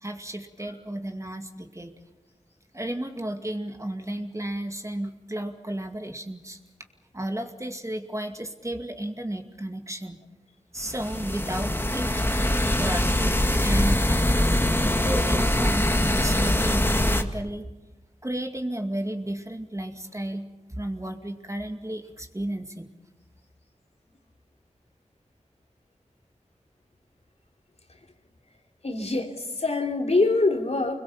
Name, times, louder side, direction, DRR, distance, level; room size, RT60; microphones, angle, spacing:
voice 1, 0.0-2.0 2.7-6.6 7.1-10.2 10.7-12.3 12.6-14.6 15.0-17.7 18.2-20.5 20.8-22.9, right 1 dB, 25° right, 5 dB, 2.2 m, -33 dB
sound 1, 10.8-17.2, left 1 dB, 15° left, 1.9 m, -23 dB
voice 2, 28.8-31.0, left 3 dB, 55° left, 2 dB, 3.2 m, -24 dB
25.5 x 21.5 x 7.2 m, 1.1 s
cardioid pair, 45°, 13 cm